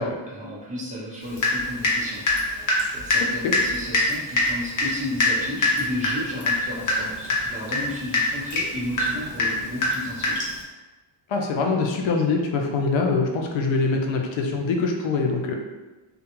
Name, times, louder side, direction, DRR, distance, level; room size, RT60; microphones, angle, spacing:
voice 1, 0.3-10.4, left 1 dB, 15° right, -6 dB, 0.8 m, -33 dB
Water tap faucet / Drip, 1.4-2.0 2.3-10.6, left 2 dB, 40° left, 0.8 m, -23 dB
voice 2, 11.3-15.6, left 4 dB, 70° left, 2 dB, 0.6 m, -23 dB
2.3 x 2.2 x 2.9 m, 1.2 s
cardioid pair, 95°, 48 cm